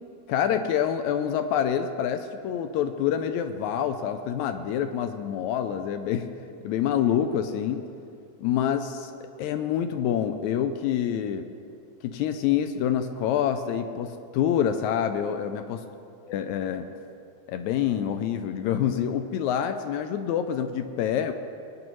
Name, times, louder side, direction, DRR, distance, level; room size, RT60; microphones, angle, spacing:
voice 1, 0.3-6.3 6.6-7.8 8.4-9.1 9.4-11.5 12.0-15.8 16.3-16.9 17.5-21.3, left 9 dB, 80° left, 8 dB, 1.8 m, -26 dB
20.5 x 9.2 x 3.1 m, 2.5 s
omnidirectional pair, 3.6 m